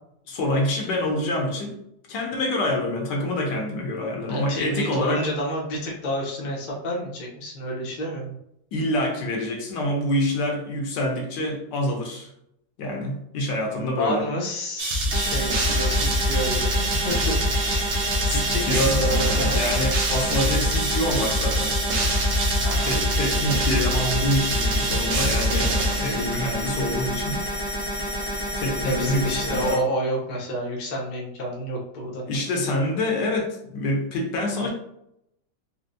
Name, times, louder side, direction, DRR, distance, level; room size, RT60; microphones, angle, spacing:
voice 1, 0.3-1.8 2.1-5.3 8.7-12.3 12.8-14.3 18.3-19.0 19.3-21.7 22.9-27.4 28.5-29.8 32.3-34.7, left 1 dB, 75° left, 1 dB, 1.4 m, -26 dB
voice 2, 4.3-8.3 14.0-17.4 17.6-18.0 18.3-19.6 22.6-23.0 28.8-32.2, equal, 45° left, -3 dB, 0.5 m, -29 dB
sound 1, 14.8-26.7, right 1 dB, 85° right, 1.4 m, -24 dB
sound 2, 15.1-29.7, equal, 25° right, 0.7 m, -29 dB
4.4 x 2.0 x 2.6 m, 0.76 s
omnidirectional pair, 2.0 m